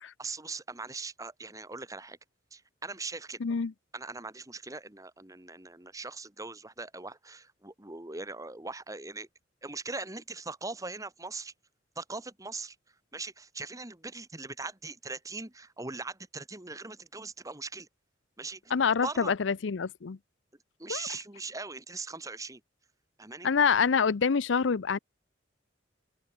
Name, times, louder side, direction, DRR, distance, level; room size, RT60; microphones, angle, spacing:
voice 1, 0.2-2.2 2.5-3.4 3.9-9.3 9.6-11.5 12.0-12.8 13.1-17.9 18.4-18.6 19.0-19.4 20.8-22.6 23.2-23.5, right 3 dB, 20° right, 1.9 m, -40 dB
voice 2, 3.4-3.7 18.7-20.2 20.9-21.1 23.4-25.0, left 6 dB, 75° left, 0.6 m, -26 dB
open air
head